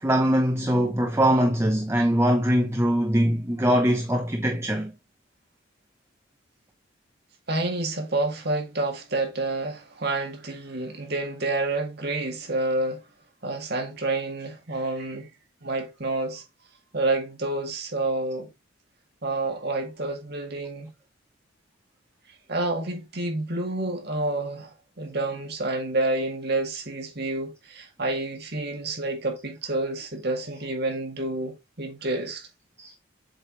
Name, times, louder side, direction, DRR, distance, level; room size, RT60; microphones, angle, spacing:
voice 1, 0.0-4.9 32.8-32.9, equal, 15° right, 0.7 m, -22 dB
voice 2, 7.5-13.0 13.4-15.3 15.6-16.4 16.9-18.5 19.2-20.9 22.5-32.5, right 2 dB, 50° right, 2.0 m, -29 dB
7.6 x 4.6 x 3.2 m
head